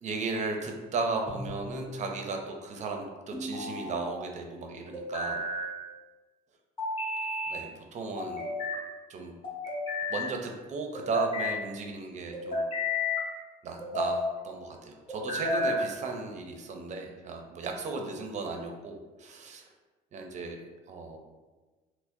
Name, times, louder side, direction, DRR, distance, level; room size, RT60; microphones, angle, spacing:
voice 1, 0.0-5.4 7.5-8.5 9.1-9.3 10.1-12.6 13.6-14.2 14.4-19.6 20.1-20.6 20.9-21.2, right 4 dB, 40° right, 3 dB, 0.4 m, -35 dB
sound 1, 1.3-1.9 3.3-4.1 4.9-5.7 6.8-7.6 8.2-8.8 9.4-10.3 10.9-11.6 12.3-13.3 13.8-14.3 15.1-15.9, left 2 dB, 30° left, 1.2 m, -32 dB
4.4 x 2.0 x 2.6 m, 1.3 s
cardioid pair, 120°, 18 cm